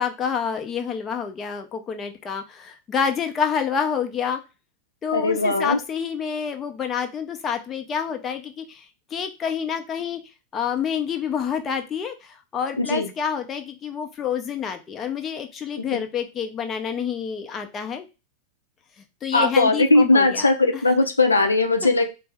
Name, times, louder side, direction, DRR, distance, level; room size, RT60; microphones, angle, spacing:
voice 1, 0.0-4.4 5.0-8.9 9.1-10.2 10.5-18.1 19.2-20.5 20.7-20.8, left 7 dB, 25° left, 5 dB, 0.6 m, -28 dB
voice 2, 5.1-5.8 12.8-13.1 15.8-16.0 19.3-22.1, left 2 dB, 80° left, 5 dB, 0.5 m, -19 dB
4.2 x 2.0 x 3.4 m, 0.28 s
figure-of-eight pair, 90°, 0 cm